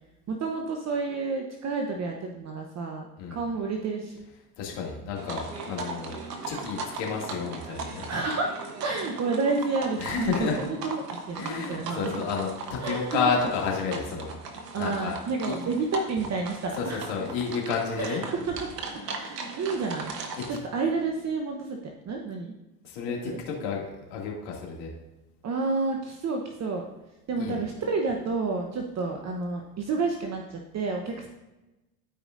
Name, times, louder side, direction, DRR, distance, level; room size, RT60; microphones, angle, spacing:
voice 1, 0.3-4.1 7.8-8.5 8.8-12.2 12.8-13.2 14.7-17.1 18.0-20.2 20.5-22.5 23.2-23.4 25.4-26.8 27.3-31.3, right 4 dB, 35° right, 2 dB, 0.9 m, -30 dB
voice 2, 4.6-8.1 10.0-10.6 11.4-14.3 14.7-15.2 15.5-15.6 16.7-18.2 20.4-20.5 22.8-24.9 27.4-27.6, left 5 dB, 65° left, -1 dB, 2.4 m, -31 dB
sound 1, 5.2-20.6, right 3 dB, 90° right, 1.1 m, -38 dB
13.0 x 5.0 x 2.6 m, 1.0 s
hypercardioid pair, 85°, 47 cm